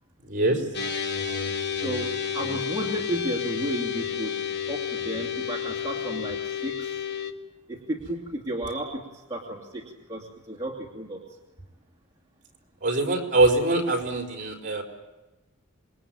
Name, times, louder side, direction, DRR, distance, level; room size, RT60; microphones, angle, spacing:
voice 1, 0.2-0.6 12.8-14.8, right 2 dB, 35° right, 3 dB, 4.4 m, -23 dB
sound 1, 0.7-7.3, left 7 dB, 50° left, 1.4 m, -31 dB
voice 2, 1.8-4.3 4.7-6.9 7.7-9.0 9.3-11.2, right 1 dB, 15° right, -3 dB, 2.7 m, -33 dB
27.0 x 22.0 x 8.9 m, 1.1 s
head